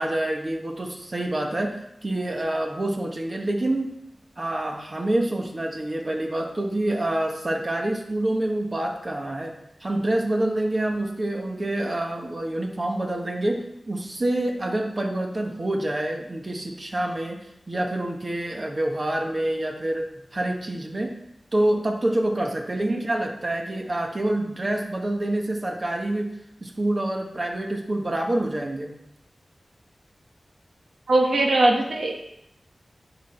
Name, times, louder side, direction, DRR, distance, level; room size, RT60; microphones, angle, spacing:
voice 1, 0.0-3.9 4.4-9.5 9.8-21.1 21.5-26.3 26.6-28.9, right 1 dB, 40° right, 2 dB, 1.2 m, -27 dB
voice 2, 31.1-32.1, right 2 dB, 85° right, 1 dB, 1.3 m, -20 dB
10.0 x 6.1 x 4.3 m, 0.79 s
wide cardioid pair, 80°, 0 cm